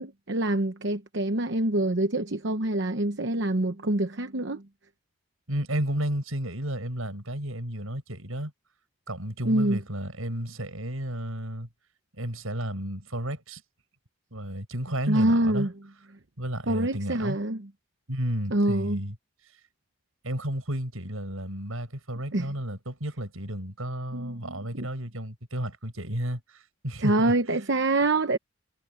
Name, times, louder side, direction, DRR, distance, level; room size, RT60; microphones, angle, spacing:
voice 1, 0.0-4.6 9.4-9.8 15.1-15.7 16.7-17.7 18.5-19.0 22.3-22.5 24.1-24.9 27.0-28.4, right 1 dB, 55° right, 1.0 m, -26 dB
voice 2, 5.5-8.5 9.1-11.7 12.2-13.6 14.3-15.7 16.4-17.4 18.1-19.1 20.2-27.3, right 1 dB, 75° right, 6.3 m, -32 dB
head